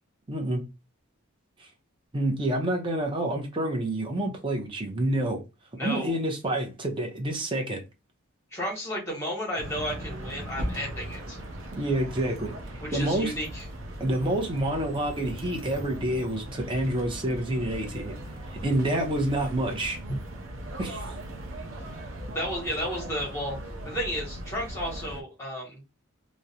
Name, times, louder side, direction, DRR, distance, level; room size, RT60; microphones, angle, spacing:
voice 1, 0.3-0.6 1.6-1.7 2.1-5.4 5.8-7.8 11.7-12.5 12.9-13.3 14.0-18.1 18.5-20.0 20.8-21.2, right 1 dB, 25° right, 0.5 m, -28 dB
voice 2, 5.7-6.2 8.5-11.4 12.8-13.6 20.1-20.2 22.3-23.6 23.8-25.8, equal, 15° left, 1.0 m, -33 dB
sound 1, 9.6-25.2, right 1 dB, 70° right, 0.5 m, -38 dB
2.4 x 2.0 x 2.7 m
head